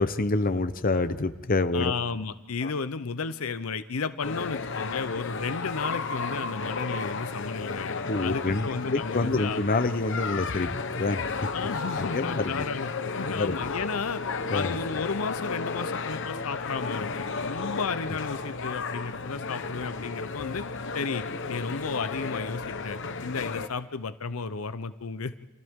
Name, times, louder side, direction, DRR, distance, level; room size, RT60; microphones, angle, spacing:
voice 1, 0.0-1.9 2.6-2.7 8.1-11.3 12.0-12.7 13.2-13.6 14.5-14.8, left 3 dB, 40° left, 11 dB, 0.8 m, -27 dB
voice 2, 1.7-9.6 11.5-14.2 14.5-20.6 20.9-25.3, left 5 dB, 75° left, 12 dB, 0.7 m, -33 dB
sound 1, 4.2-23.7, left 4 dB, 60° left, 1.1 m, -33 dB
29.5 x 26.5 x 3.7 m, 1.2 s
head